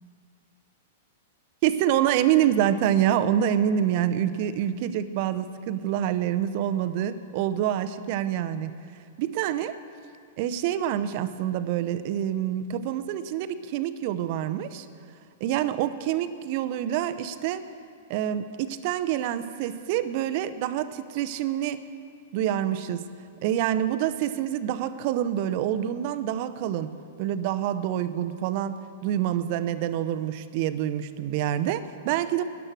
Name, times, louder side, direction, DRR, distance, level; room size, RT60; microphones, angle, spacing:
voice 1, 1.6-8.7 9.2-9.8 10.4-14.9 15.4-17.7 18.1-21.8 22.3-23.0 23.4-26.9 27.2-32.4, right 11 dB, 45° right, 12 dB, 0.6 m, -26 dB
13.0 x 9.9 x 6.1 m, 2.3 s
figure-of-eight pair, 100°, 0 cm